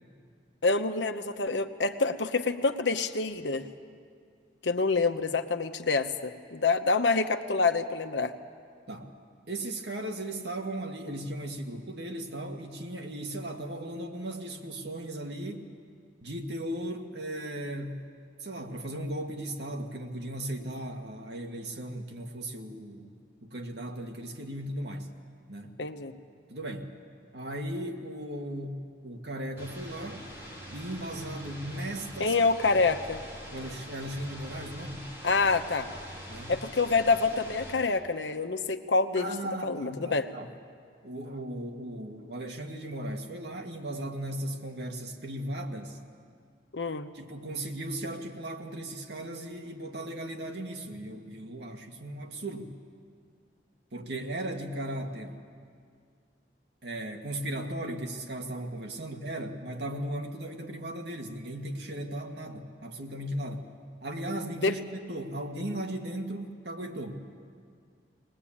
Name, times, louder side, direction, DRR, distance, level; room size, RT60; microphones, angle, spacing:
voice 1, 0.6-3.6 4.6-8.3 25.8-26.1 32.2-33.2 35.2-35.9 36.5-39.3 39.6-40.3 46.7-47.1 64.6-64.7, left 4 dB, 85° left, 8 dB, 1.0 m, -27 dB
voice 2, 9.5-15.7 16.2-18.0 18.4-23.1 23.4-25.1 25.5-25.8 26.5-26.9 27.3-30.2 30.7-32.4 32.7-32.8 33.5-35.1 36.3-36.5 39.2-40.5 41.0-46.0 47.1-52.8 53.9-55.4 56.8-63.7 64.0-67.2, right 1 dB, 70° right, 3 dB, 1.9 m, -37 dB
sound 1, 29.6-37.7, equal, 15° right, 3.5 m, -44 dB
21.5 x 20.0 x 8.7 m, 2.2 s
head